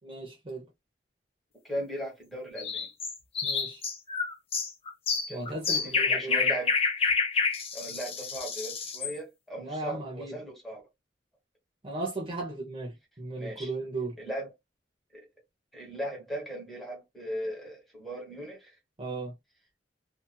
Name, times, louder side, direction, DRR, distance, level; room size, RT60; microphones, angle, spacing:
voice 1, 0.0-0.7 3.4-3.8 5.3-6.5 9.6-10.4 11.8-14.2 19.0-19.3, right 2 dB, 30° right, 0.7 m, -36 dB
voice 2, 1.6-2.9 5.3-6.7 7.7-10.8 13.4-13.7 14.2-14.5 15.1-15.3 15.7-18.8, equal, ahead, 1.4 m, -38 dB
sound 1, 2.6-9.1, left 5 dB, 35° left, 0.6 m, -29 dB
2.7 x 2.5 x 2.2 m
head